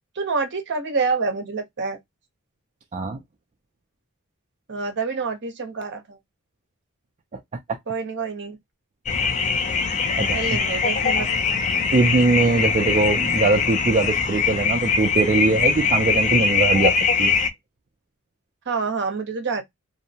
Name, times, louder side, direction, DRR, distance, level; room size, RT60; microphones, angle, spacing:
voice 1, 0.1-2.0 4.7-6.2 7.9-8.6 10.3-11.4 18.7-19.6, right 4 dB, 55° right, 0.7 m, -27 dB
sound 1, 9.1-17.5, left 5 dB, 35° left, 0.4 m, -22 dB
voice 2, 11.9-16.9 17.2-17.3, right 3 dB, 30° right, 0.3 m, -21 dB
2.6 x 2.0 x 2.7 m
head